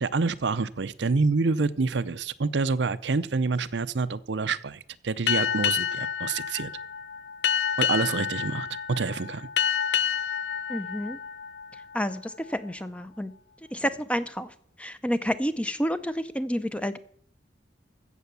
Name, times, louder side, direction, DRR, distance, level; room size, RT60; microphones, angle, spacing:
voice 1, 0.0-6.7 7.8-9.5, right 4 dB, 75° right, 13 dB, 0.6 m, -27 dB
Boat Water vehicle, 5.3-12.3, left 8 dB, 70° left, 0.5 m, -29 dB
voice 2, 10.7-11.2 11.9-13.3 13.7-14.5 14.8-17.0, equal, 5° left, 12 dB, 0.6 m, -29 dB
15.0 x 7.0 x 6.9 m, 0.63 s
head